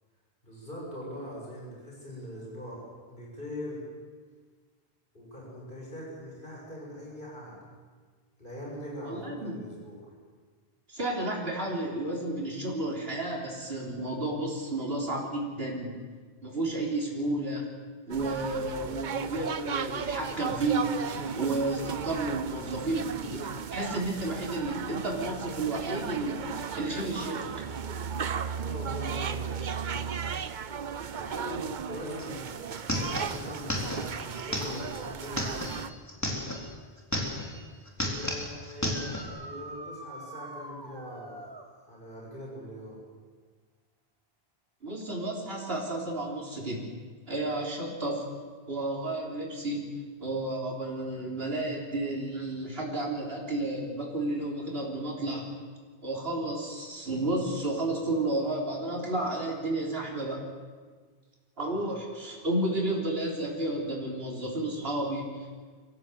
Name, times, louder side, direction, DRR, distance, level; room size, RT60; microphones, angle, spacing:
voice 1, 0.4-2.8 3.1-3.8 5.1-7.8 8.4-10.2 28.5-30.3 31.1-32.5 33.2-35.6 38.0-41.5 41.8-43.0 61.8-61.9, equal, 55° left, -4 dB, 7.0 m, -41 dB
voice 2, 9.1-9.5 10.9-15.9 16.4-17.7 18.1-27.5 44.8-46.9 47.3-48.2 48.7-49.9 50.2-55.5 56.0-60.5 61.6-65.6, right 2 dB, 70° right, -2 dB, 3.9 m, -32 dB
sound 1, 18.1-35.9, right 7 dB, 50° right, 0.8 m, -35 dB
sound 2, 32.2-32.3 32.5-36.7 37.0-37.6 37.9-39.3, left 1 dB, 15° left, 3.6 m, -33 dB
sound 3, 38.7-41.7 45.0-45.1 47.1-47.2 53.5-53.6, right 1 dB, 25° right, 1.7 m, -44 dB
24.5 x 15.5 x 8.0 m, 1.5 s
omnidirectional pair, 1.1 m